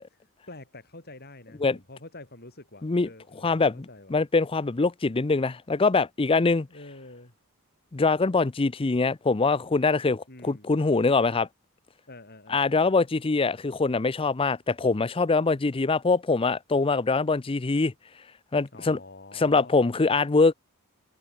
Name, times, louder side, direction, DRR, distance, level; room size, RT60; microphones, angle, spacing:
voice 1, 0.1-4.1 6.7-7.3 10.3-10.7 12.1-12.9 18.7-19.8, left 2 dB, 45° left, 7.2 m, -47 dB
voice 2, 3.4-6.7 7.9-11.5 12.5-17.9 18.5-19.0 19.3-20.5, left 3 dB, 25° left, 0.5 m, -23 dB
head